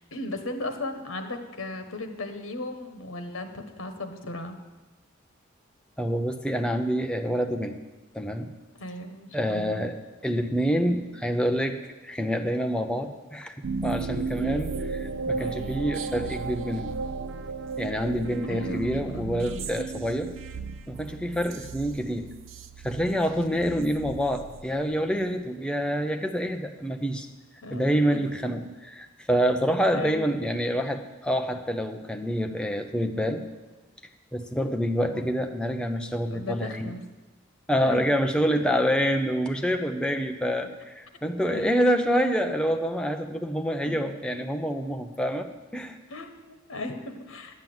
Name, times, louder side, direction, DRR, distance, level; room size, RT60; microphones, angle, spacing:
voice 1, 0.0-4.6 8.7-9.8 15.4-15.9 18.4-19.6 23.4-23.7 27.6-28.2 29.9-30.3 36.3-37.0 37.8-38.0 41.4-41.7 46.1-47.6, left 2 dB, 80° left, 6 dB, 1.2 m, -37 dB
voice 2, 6.0-7.8 8.1-8.5 9.3-10.0 10.2-13.6 13.8-16.9 17.8-20.3 20.9-22.3 22.8-27.3 27.7-33.4 34.3-36.9 37.7-46.0, equal, 5° left, 5 dB, 0.6 m, -27 dB
sound 1, 13.6-25.2, right 4 dB, 80° right, 0.5 m, -34 dB
10.5 x 7.4 x 7.8 m, 1.2 s
head